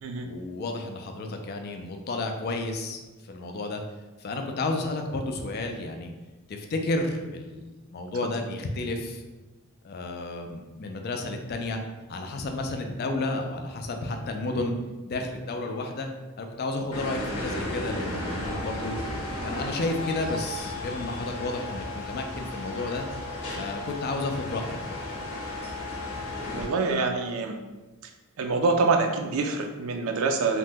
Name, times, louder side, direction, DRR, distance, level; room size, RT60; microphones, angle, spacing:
voice 1, 0.2-3.8 4.2-6.1 6.5-9.2 9.8-11.8 12.1-14.7 15.0-16.1 16.4-19.0 19.4-23.0 23.5-25.0, left 2 dB, 45° left, 4 dB, 0.3 m, -32 dB
sound 1, 16.9-26.7, left 1 dB, 85° left, 0.8 m, -34 dB
voice 2, 26.5-27.6 28.4-30.6, right 4 dB, 65° right, 4 dB, 0.4 m, -25 dB
2.8 x 2.1 x 3.3 m, 1.2 s
head